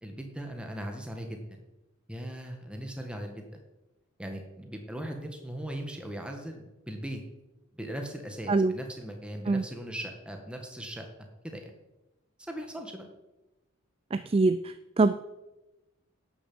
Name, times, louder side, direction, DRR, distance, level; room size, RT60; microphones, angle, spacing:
voice 1, 0.0-1.6 2.1-3.6 4.2-7.2 7.7-11.1 11.4-11.7 12.5-13.1, right 1 dB, 5° right, 3 dB, 1.4 m, -39 dB
voice 2, 14.1-14.6 15.0-15.1, right 3 dB, 25° right, 12 dB, 0.3 m, -23 dB
11.5 x 7.1 x 7.8 m, 0.99 s
head